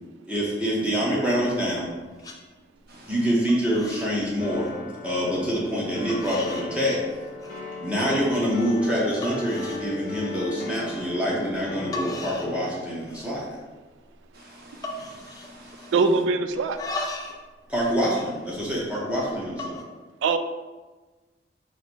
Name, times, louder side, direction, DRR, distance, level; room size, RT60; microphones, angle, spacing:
voice 1, 0.3-1.9 3.1-4.7 5.0-7.0 7.8-13.6 17.7-19.8, equal, 5° right, -6 dB, 0.7 m, -26 dB
sound 1, 1.7-1.9 2.2-2.4 2.8-3.2 3.5-4.1 4.4-4.8 5.5-5.6 6.1-6.7 7.1-7.6 8.0-8.1 8.6-8.7 9.2-9.9 10.3-10.5 11.6-11.7 11.9-12.6 12.9-13.4 13.7-13.8 14.1-14.4 14.8-16.2 16.6-17.4 17.7-19.0 19.5-19.8, left 2 dB, 20° left, 0.3 m, -37 dB
voice 2, 2.9-3.4 14.3-16.0 17.8-17.9, equal, 55° right, -3 dB, 0.9 m, -48 dB
sound 2, 4.4-12.7, left 2 dB, 50° left, 0.7 m, -37 dB
voice 3, 15.9-16.8 20.2-20.4, right 4 dB, 85° right, 10 dB, 0.3 m, -22 dB
4.0 x 2.0 x 4.4 m, 1.3 s
head